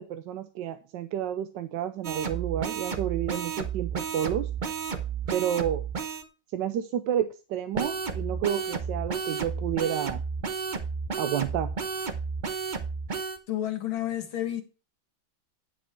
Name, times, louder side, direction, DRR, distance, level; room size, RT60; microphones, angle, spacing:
voice 1, 0.0-4.5 5.3-5.8 6.5-10.2 11.2-11.7, right 10 dB, 75° right, 1.3 m, -30 dB
sound 1, 2.0-6.2 7.7-13.4, right 5 dB, 40° right, 0.7 m, -32 dB
voice 2, 13.5-14.6, left 12 dB, 90° left, 2.3 m, -30 dB
10.0 x 5.2 x 4.5 m
omnidirectional pair, 2.1 m